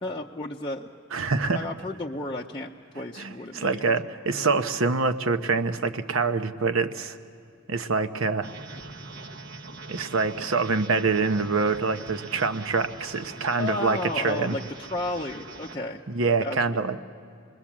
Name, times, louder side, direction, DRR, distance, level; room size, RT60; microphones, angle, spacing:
voice 1, 0.0-0.9 1.5-3.9 13.6-16.0 16.4-16.8, left 2 dB, 20° left, -2 dB, 0.6 m, -33 dB
voice 2, 1.1-1.6 3.2-7.2 7.7-8.5 9.9-14.0 14.2-14.6 16.1-17.0, right 4 dB, 70° right, 9 dB, 0.9 m, -25 dB
sound 1, 8.4-15.8, right 3 dB, 50° right, 1.1 m, -43 dB
27.5 x 21.0 x 7.3 m, 2.5 s
head